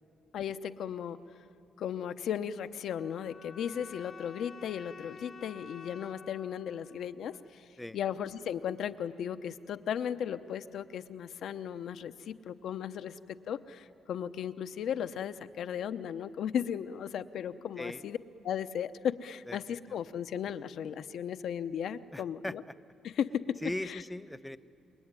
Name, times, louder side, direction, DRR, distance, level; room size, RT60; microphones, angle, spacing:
voice 1, 0.3-1.2 1.8-7.6 7.9-18.2 18.4-22.6 23.0-23.6 23.8-24.0, left 8 dB, 70° left, 11 dB, 0.8 m, -36 dB
sound 1, 2.8-7.9, left 4 dB, 40° left, 1.0 m, -51 dB
voice 2, 19.5-20.0 22.1-22.6 23.6-24.6, left 1 dB, 10° left, 13 dB, 0.7 m, -39 dB
28.0 x 22.0 x 9.7 m, 2.8 s
cardioid pair, 90°, 0 cm